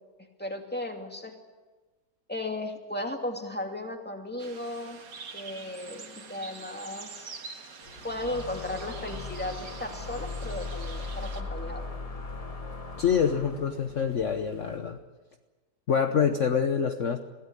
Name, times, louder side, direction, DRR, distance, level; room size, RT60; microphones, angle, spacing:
voice 1, 0.4-1.3 2.3-5.0 5.3-7.3 8.0-11.8, left 1 dB, 5° left, 3 dB, 2.4 m, -35 dB
sound 1, 4.4-11.4, right 5 dB, 90° right, 2.4 m, -45 dB
sound 2, 7.8-14.8, left 2 dB, 70° left, 4.1 m, -50 dB
sound 3, 8.1-13.9, left 3 dB, 25° left, 1.0 m, -38 dB
voice 2, 13.0-15.0 15.9-17.2, left 7 dB, 50° left, 6 dB, 1.3 m, -26 dB
23.0 x 16.5 x 9.9 m, 1.3 s
omnidirectional pair, 1.8 m